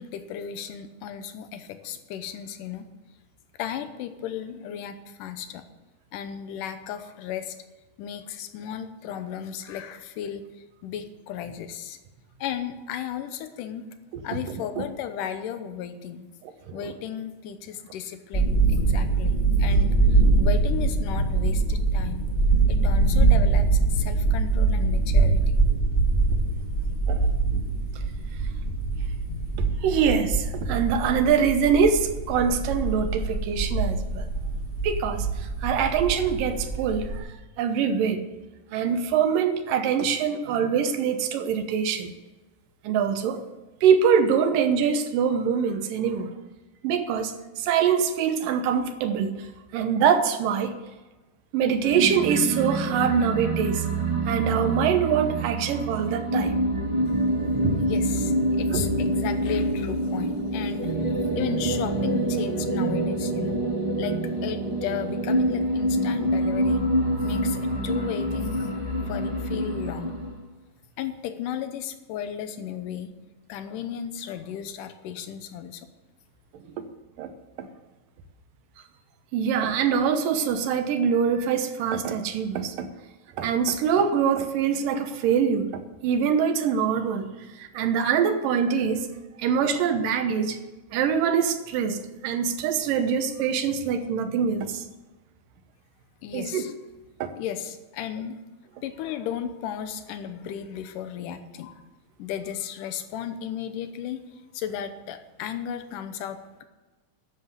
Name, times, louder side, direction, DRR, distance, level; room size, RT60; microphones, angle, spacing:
voice 1, 0.0-2.9 3.6-5.7 6.1-7.6 8.0-12.0 12.4-14.0 14.2-16.3 16.7-22.3 22.7-25.6 57.8-63.6 64.0-66.8 67.2-68.7 69.1-70.3 71.0-73.1 73.5-75.9 96.2-96.7 97.3-98.4 98.8-101.8 102.2-104.2 104.5-106.6, left 9 dB, 80° left, 10 dB, 2.5 m, -35 dB
sound 1, 18.3-37.2, right 3 dB, 20° left, 1.8 m, -23 dB
voice 2, 29.6-34.3 34.8-37.3 37.6-38.2 38.7-42.1 42.8-43.4 43.8-46.3 46.8-49.4 49.7-50.7 51.5-53.8 54.3-56.6 57.6-57.8 58.7-58.8 66.9-67.0 76.8-76.9 77.2-77.3 77.6-77.7 79.3-82.9 83.4-87.3 87.6-89.1 89.4-90.6 90.9-94.8 96.3-96.6 97.2-97.3, right 7 dB, 85° right, 8 dB, 2.7 m, -24 dB
sound 2, 51.8-70.4, right 1 dB, 10° right, 1.6 m, -26 dB
11.5 x 7.5 x 8.0 m, 1.2 s
omnidirectional pair, 3.8 m